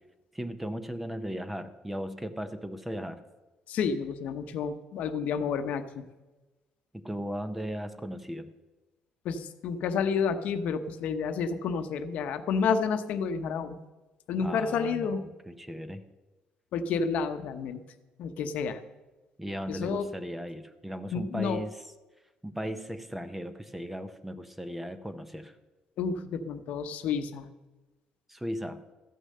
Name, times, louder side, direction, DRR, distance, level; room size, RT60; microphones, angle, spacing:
voice 1, 0.3-3.2 6.9-8.5 14.4-16.0 19.4-21.8 22.4-25.6 28.3-28.8, equal, 5° right, 11 dB, 0.6 m, -37 dB
voice 2, 3.7-6.0 9.2-13.8 14.3-15.2 16.7-17.8 18.2-18.8 19.7-20.1 21.1-21.6 26.0-27.5, left 6 dB, 65° left, 10 dB, 0.8 m, -30 dB
14.0 x 6.6 x 6.5 m, 1.1 s
cardioid pair, 140°, 3 cm